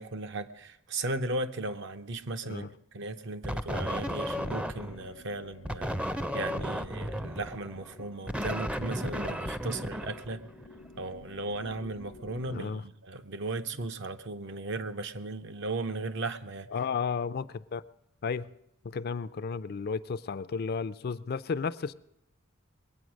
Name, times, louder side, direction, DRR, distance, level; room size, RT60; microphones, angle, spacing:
voice 1, 0.0-10.4 11.0-16.7, right 2 dB, 65° right, 0.8 m, -36 dB
sound 1, 3.4-5.1 5.7-10.8, equal, 5° right, 0.5 m, -34 dB
sound 2, 3.7-12.6, left 3 dB, 80° left, 0.8 m, -52 dB
voice 2, 12.5-12.8 16.7-17.8 18.2-18.5 18.8-21.9, left 5 dB, 50° left, 0.4 m, -33 dB
21.0 x 8.7 x 6.3 m
head